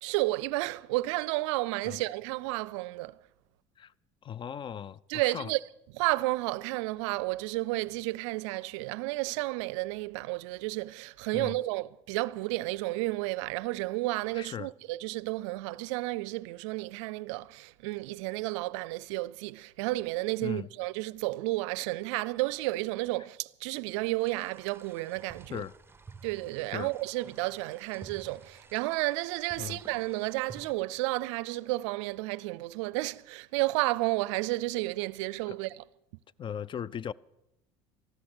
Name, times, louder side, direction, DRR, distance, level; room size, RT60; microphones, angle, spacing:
voice 1, 0.0-3.2 5.1-5.6 5.9-25.6 26.2-35.8, right 20 dB, 80° right, 0.4 m, -32 dB
voice 2, 4.2-5.5 11.3-11.6 14.3-14.7 20.4-20.7 25.5-25.7 26.7-26.9 29.6-29.8 35.5-35.6 36.4-37.1, left 8 dB, 35° left, 0.4 m, -38 dB
sound 1, 24.2-30.7, right 4 dB, 15° right, 0.8 m, -52 dB
13.5 x 13.0 x 6.2 m
supercardioid pair, 85°, 15 cm